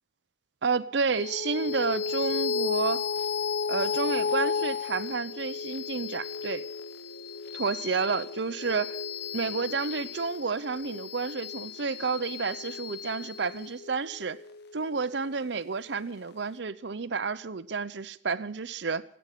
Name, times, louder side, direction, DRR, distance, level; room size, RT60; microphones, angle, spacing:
voice 1, 0.6-3.0 3.7-6.6 7.5-9.0 9.3-14.4 14.7-19.0, right 4 dB, 65° right, 0.7 m, -30 dB
sound 1, 1.1-15.9, left 5 dB, 55° left, 0.7 m, -34 dB
17.0 x 8.9 x 9.3 m
head